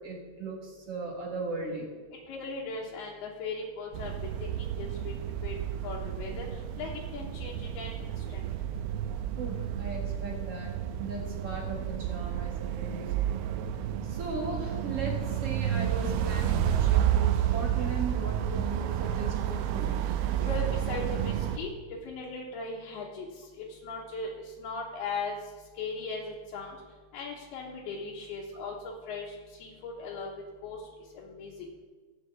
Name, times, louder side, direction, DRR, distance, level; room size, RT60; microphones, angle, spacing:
voice 1, 0.0-1.9 9.4-13.1 14.0-20.0, right 3 dB, 55° right, -1 dB, 1.8 m, -37 dB
voice 2, 2.3-4.1 4.6-5.1 5.4-5.6 5.8-6.5 6.8-8.5 20.4-21.7 22.0-23.3 23.6-25.4 25.8-26.8 27.1-30.8 31.1-31.5, left 4 dB, 70° left, -5 dB, 3.0 m, -38 dB
sound 1, 3.9-21.6, right 10 dB, 85° right, 2.2 m, -30 dB
18.5 x 8.3 x 3.6 m, 1.4 s
omnidirectional pair, 5.0 m